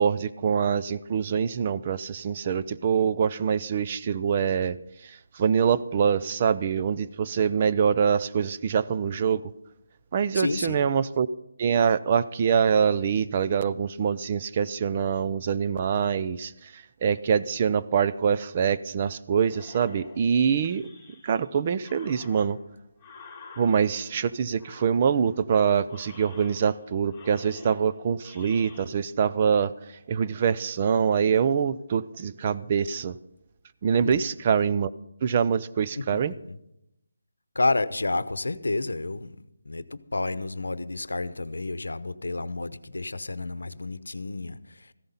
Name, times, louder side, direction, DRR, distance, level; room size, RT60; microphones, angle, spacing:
voice 1, 0.0-4.8 5.0-9.4 10.1-11.3 11.6-20.9 21.2-22.6 23.6-29.7 30.1-33.2 33.8-34.9 35.2-36.3, right 7 dB, 30° right, 13 dB, 0.4 m, -24 dB
voice 2, 10.3-10.8 34.0-34.2 36.0-36.6 37.5-44.9, left 2 dB, 90° left, 15 dB, 0.8 m, -30 dB
sound 1, 19.4-21.5 21.8-24.2 24.6-25.5 25.9-26.8 27.1-28.9, left 3 dB, 5° left, 3.2 m, -49 dB
15.0 x 11.5 x 5.6 m, 0.82 s
figure-of-eight pair, 165°, 0 cm